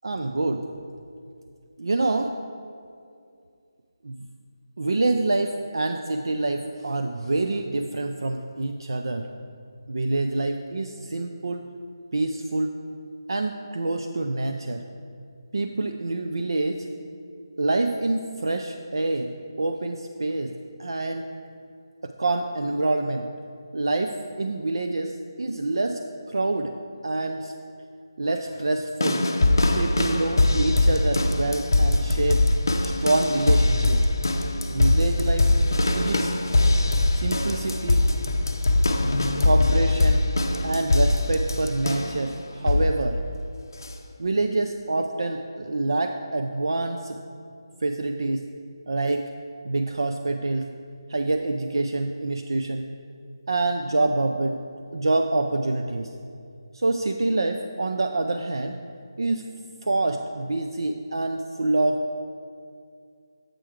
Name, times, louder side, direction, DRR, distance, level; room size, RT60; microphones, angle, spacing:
voice 1, 0.0-0.6 1.8-2.3 4.0-4.3 4.8-9.3 9.9-11.6 12.1-12.7 13.3-14.8 15.5-16.9 17.6-20.5 20.8-21.2 22.0-23.3 23.7-26.0 26.3-26.7 27.0-27.5 28.2-29.3 29.7-32.5 32.8-34.0 34.7-35.5 36.0-36.3 37.2-38.1 39.4-40.3 40.6-43.2 44.2-47.2 47.8-48.4 48.9-49.3 49.6-50.7 51.1-52.9 53.5-54.6 54.9-56.1 56.7-58.8 59.2-59.4 59.8-62.0, right 2 dB, 65° right, 5 dB, 0.4 m, -26 dB
sound 1, 29.0-42.2 42.6-43.0 43.8-43.9, left 2 dB, 50° left, 0.5 m, -22 dB
7.6 x 4.9 x 4.6 m, 2.4 s
figure-of-eight pair, 175°, 2 cm